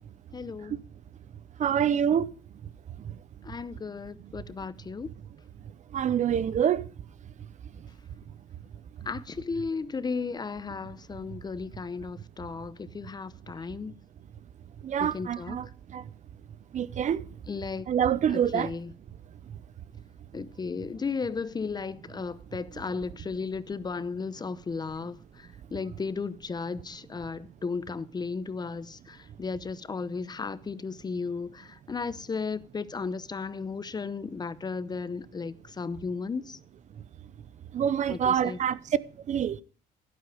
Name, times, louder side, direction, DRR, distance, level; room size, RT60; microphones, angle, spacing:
voice 1, 0.3-0.8 3.4-5.1 9.1-13.9 15.0-15.6 17.5-17.9 18.3-19.0 20.3-36.6 38.1-38.6, left 4 dB, 25° left, 0.7 m, -35 dB
voice 2, 1.6-2.3 5.9-6.8 14.8-15.7 15.9-16.0 16.7-17.2 17.9-18.7 37.7-38.8 39.3-39.6, right 9 dB, 45° right, 0.7 m, -26 dB
12.5 x 12.0 x 4.8 m
cardioid pair, 110°, 17 cm